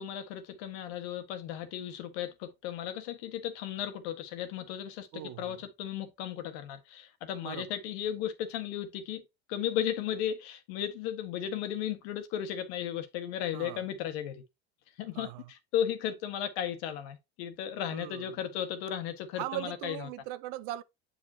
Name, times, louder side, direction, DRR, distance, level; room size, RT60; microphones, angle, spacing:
voice 1, 0.0-5.1 5.4-9.2 9.5-14.4 15.0-20.1, left 10 dB, 70° left, 1.6 m, -35 dB
voice 2, 5.1-5.6 7.4-7.7 13.5-13.9 15.1-15.5 17.9-18.4 19.3-20.8, right 15 dB, 65° right, 0.8 m, -39 dB
8.0 x 5.2 x 2.7 m
supercardioid pair, 95°, 32 cm